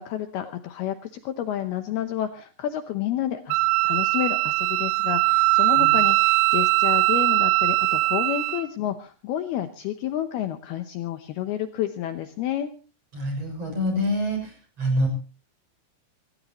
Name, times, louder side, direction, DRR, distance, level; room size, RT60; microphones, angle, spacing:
voice 1, 0.0-12.7, left 11 dB, 80° left, 8 dB, 2.3 m, -30 dB
Wind instrument woodwind instrument, 3.5-8.6, right 21 dB, 80° right, 3.4 m, -21 dB
voice 2, 13.1-14.5 14.8-15.1, equal, 30° right, 3 dB, 7.4 m, -26 dB
25.5 x 16.0 x 3.0 m, 0.35 s
omnidirectional pair, 5.6 m